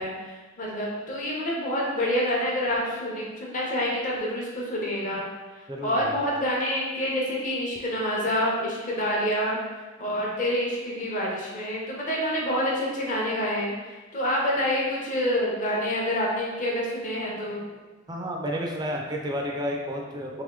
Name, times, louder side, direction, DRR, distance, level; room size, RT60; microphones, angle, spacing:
voice 1, 0.0-5.2 5.8-9.6 10.0-13.7 14.1-17.6, equal, 40° left, -4 dB, 0.8 m, -27 dB
voice 2, 5.7-6.2 18.1-20.4, equal, 20° right, 0 dB, 0.5 m, -31 dB
3.5 x 3.0 x 3.6 m, 1.2 s
head